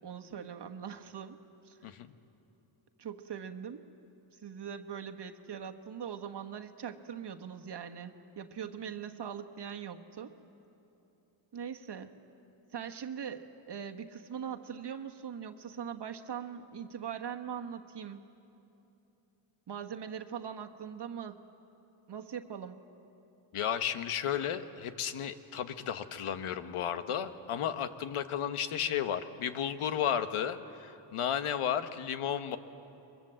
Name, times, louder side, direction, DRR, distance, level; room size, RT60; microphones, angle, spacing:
voice 1, 0.0-1.8 3.0-3.8 4.4-10.3 11.5-12.2 12.7-18.2 19.7-21.4 22.1-22.8, right 8 dB, 55° right, 6 dB, 1.4 m, -41 dB
voice 2, 1.8-2.1 23.5-32.6, left 9 dB, 80° left, 10 dB, 1.2 m, -33 dB
24.0 x 22.5 x 7.6 m, 3.0 s
cardioid pair, 75°, 50 cm